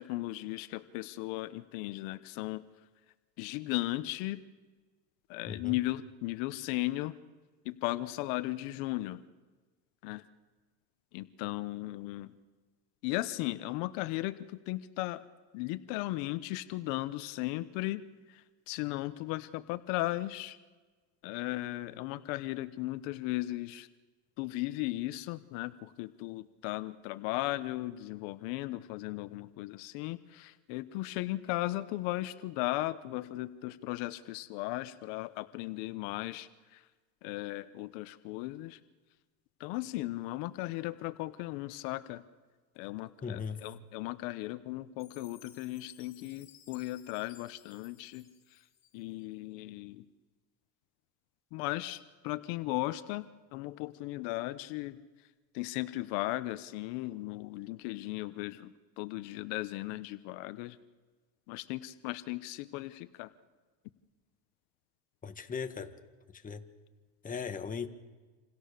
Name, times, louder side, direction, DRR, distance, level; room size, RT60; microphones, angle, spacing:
voice 1, 0.0-2.6 3.4-4.4 5.3-7.1 7.6-9.2 10.0-10.2 11.1-12.3 13.0-15.2 15.5-18.0 18.3-20.6 21.2-23.9 24.4-36.8 37.2-38.8 39.6-42.2 42.8-48.6 48.9-50.0 51.5-53.3 53.5-55.0 55.5-60.8 61.5-63.3, left 18 dB, 65° left, 13 dB, 1.2 m, -36 dB
voice 2, 5.5-5.8 43.2-43.6 65.2-66.0 66.3-66.6 67.2-67.9, left 6 dB, 15° left, 7 dB, 1.6 m, -38 dB
Chime, 45.0-49.2, left 11 dB, 35° left, 4.6 m, -59 dB
28.0 x 27.5 x 6.8 m, 1.3 s
supercardioid pair, 135°, 45 cm